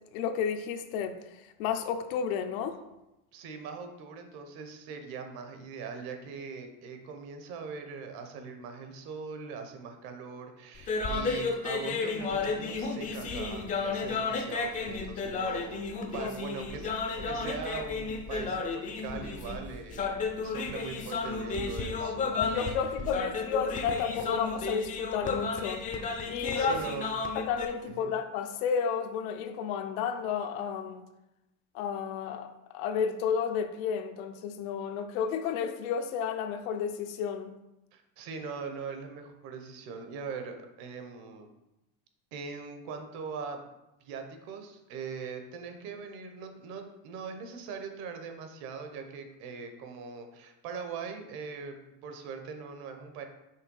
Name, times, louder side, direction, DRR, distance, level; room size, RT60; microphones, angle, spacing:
voice 1, 0.1-1.2 1.6-2.8 16.2-16.3 22.0-25.8 26.3-26.8 27.3-31.0 31.7-37.5, left 7 dB, 80° left, 0.7 m, -32 dB
voice 2, 3.3-15.9 16.1-20.0 20.4-22.4 26.4-27.1 27.9-28.1 37.9-41.5 42.3-43.6 44.0-53.2, right 5 dB, 60° right, 1.0 m, -41 dB
sound 1, 10.8-27.7, left 4 dB, 20° left, 0.4 m, -33 dB
5.8 x 3.2 x 5.3 m
cardioid pair, 150°, 41 cm